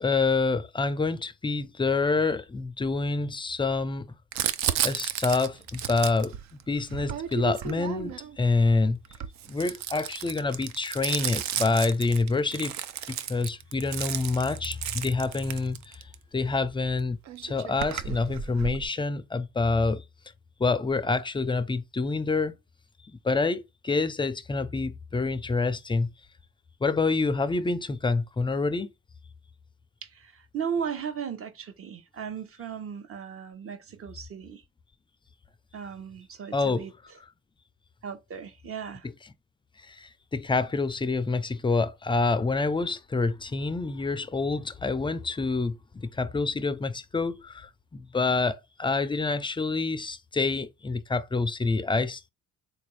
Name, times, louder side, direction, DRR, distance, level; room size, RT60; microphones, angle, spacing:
voice 1, 0.0-4.1 4.8-9.0 9.5-12.8 13.1-16.0 16.3-20.0 20.6-22.6 23.2-26.1 26.8-28.9 36.5-36.9 39.8-52.3, left 3 dB, 15° left, 0.4 m, -27 dB
Crumpling crinkling, 4.3-8.4 9.0-16.1 17.0-17.1 17.3-18.8, right 10 dB, 65° right, 0.5 m, -33 dB
voice 2, 30.1-34.6 35.7-36.9 38.0-39.1, right 7 dB, 50° right, 0.9 m, -36 dB
3.9 x 2.5 x 3.1 m
cardioid pair, 90°, 30 cm